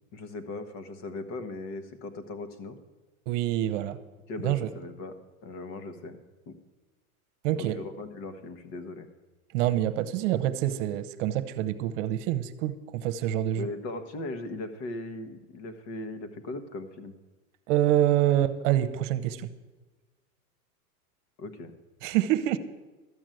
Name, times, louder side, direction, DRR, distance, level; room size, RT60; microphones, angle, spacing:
voice 1, 0.1-2.8 4.3-6.2 6.5-6.6 7.6-9.1 13.6-17.1 21.4-21.7, left 2 dB, 45° left, 8 dB, 1.5 m, -38 dB
voice 2, 3.3-4.0 4.4-4.7 7.4-7.8 9.5-13.7 17.7-19.5 22.0-22.6, right 13 dB, 55° right, 11 dB, 1.0 m, -26 dB
13.0 x 6.2 x 9.1 m, 1.2 s
hypercardioid pair, 130°, 45 cm